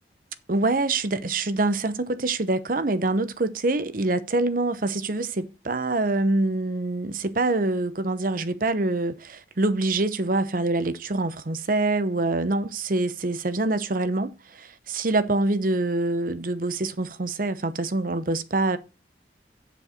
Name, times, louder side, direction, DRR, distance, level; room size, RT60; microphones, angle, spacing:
voice 1, 0.5-18.8, right 2 dB, 50° right, 0.9 m, -25 dB
7.3 x 6.9 x 6.3 m
head